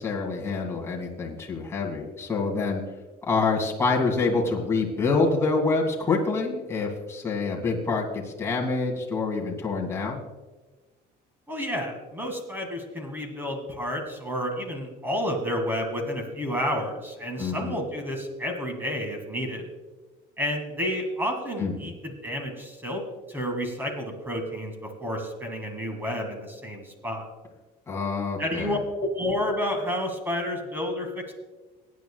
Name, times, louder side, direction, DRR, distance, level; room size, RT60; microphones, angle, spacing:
voice 1, 0.0-2.8 3.3-10.2 17.4-17.8 21.6-21.7 27.9-28.8, left 4 dB, 15° left, -2 dB, 2.0 m, -26 dB
voice 2, 11.5-19.6 20.4-23.0 23.3-27.3 28.4-31.3, equal, 10° right, 4 dB, 1.9 m, -30 dB
23.5 x 9.4 x 2.3 m, 1.2 s
cardioid pair, 170°, 19 cm